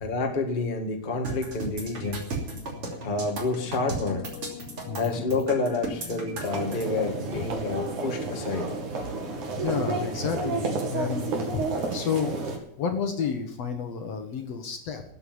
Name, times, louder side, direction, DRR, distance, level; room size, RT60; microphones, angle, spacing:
voice 1, 0.0-2.3 3.0-4.2 5.0-8.7, left 3 dB, 20° left, 3 dB, 1.3 m, -29 dB
sound 1, 1.2-6.8, right 3 dB, 45° right, 3.7 m, -35 dB
sound 2, 1.3-11.2, left 7 dB, 75° left, 2.7 m, -45 dB
voice 2, 4.8-5.2 7.3-7.5 9.6-15.1, left 6 dB, 55° left, 5 dB, 2.2 m, -31 dB
sound 3, 6.4-12.6, right 3 dB, 65° right, 3.7 m, -31 dB
13.5 x 8.5 x 9.6 m, 0.69 s
omnidirectional pair, 3.9 m